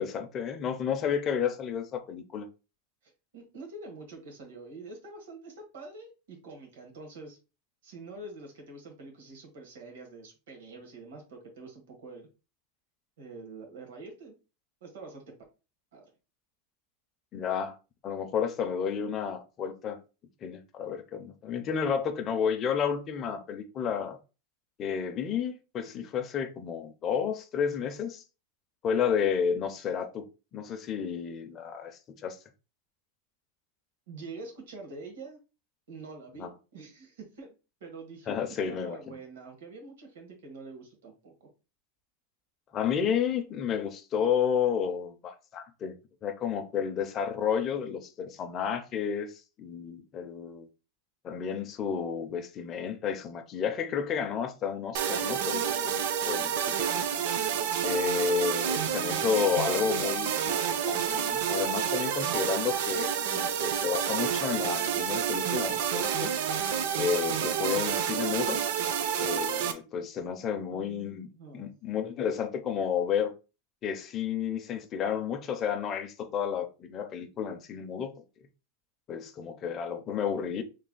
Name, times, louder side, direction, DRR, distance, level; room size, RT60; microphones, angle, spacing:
voice 1, 0.0-2.5 17.3-17.7 18.0-20.0 20.4-24.2 24.8-28.2 28.8-30.3 30.5-32.4 36.4-36.5 38.3-39.1 42.7-46.0 46.2-49.3 49.6-50.7 51.2-57.1 57.8-66.3 66.9-68.6 69.2-71.3 71.5-73.3 73.8-78.1 79.1-80.6, left 7 dB, 20° left, 0.4 m, -31 dB
voice 2, 3.0-7.4 7.8-12.3 13.2-14.4 14.8-15.3 15.9-16.1 34.1-35.4 35.9-37.5 37.8-41.5 70.7-71.7, right 3 dB, 85° right, 1.5 m, -46 dB
sound 1, 54.9-69.7, right 8 dB, 55° right, 0.5 m, -29 dB
3.3 x 2.3 x 3.7 m
supercardioid pair, 180°, 0 cm